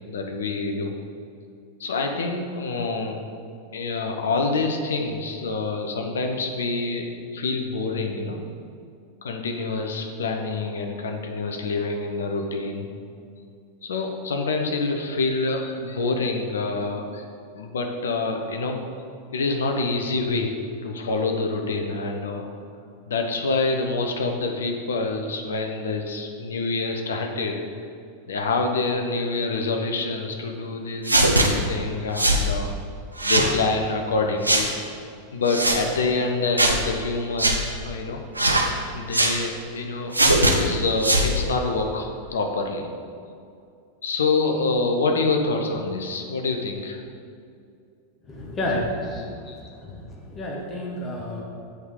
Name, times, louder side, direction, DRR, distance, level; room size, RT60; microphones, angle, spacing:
voice 1, 0.1-0.9 1.8-3.2 3.7-8.4 9.2-12.9 13.8-17.2 17.5-18.8 19.3-20.6 20.8-22.5 23.1-27.8 28.3-32.7 33.2-34.7 35.3-38.2 38.9-40.1 40.5-42.9 44.0-47.0, left 3 dB, 65° left, 3 dB, 0.8 m, -26 dB
sound 1, 31.0-31.5 32.2-32.4 33.2-33.5 34.4-34.7 35.5-35.8 36.6-36.8 37.4-37.6 38.3-38.7 39.1-39.4 40.1-40.5 41.0-41.3, right 1 dB, 85° right, 0.6 m, -19 dB
voice 2, 48.3-50.0 50.3-51.4, left 1 dB, 25° left, -2 dB, 1.2 m, -30 dB
8.0 x 3.8 x 4.9 m, 2.4 s
figure-of-eight pair, 90°, 0 cm